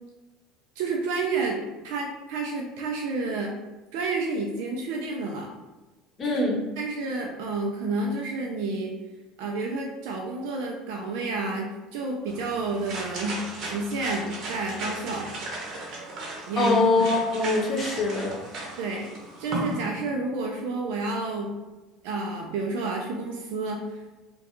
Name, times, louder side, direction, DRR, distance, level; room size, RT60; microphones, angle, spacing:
voice 1, 0.8-1.6 1.8-3.6 3.9-5.5 6.2-6.4 6.8-8.9 9.4-15.3 16.5-16.8 18.8-19.1 19.4-21.5 22.0-24.0, right 3 dB, 75° right, -1 dB, 0.4 m, -30 dB
voice 2, 6.2-6.6 16.6-18.3, left 2 dB, 35° left, -1 dB, 0.7 m, -23 dB
sound 1, 12.3-19.8, right 2 dB, 55° right, 0.8 m, -36 dB
2.3 x 2.2 x 2.9 m, 1.1 s
hypercardioid pair, 85°, 0 cm